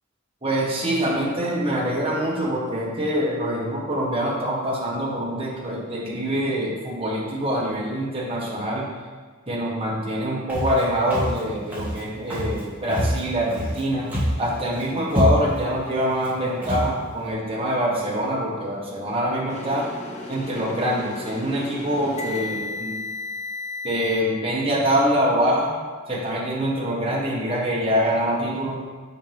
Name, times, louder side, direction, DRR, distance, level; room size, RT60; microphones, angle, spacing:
voice 1, 0.4-8.9 9.5-14.1 14.4-19.9 20.3-22.9 23.8-25.7 26.1-28.8, equal, 25° right, -5 dB, 1.5 m, -24 dB
Walk footsteps, 10.5-10.8 11.1-11.4 11.7-12.0 12.3-12.6 12.9-13.8 14.1-14.4 14.7-14.8 15.1-15.6 16.2-16.3 16.6-16.9, equal, 10° right, 2.0 m, -25 dB
sound 1, 19.5-24.2, left 2 dB, 35° left, 0.7 m, -34 dB
6.7 x 6.1 x 3.6 m, 1.4 s
head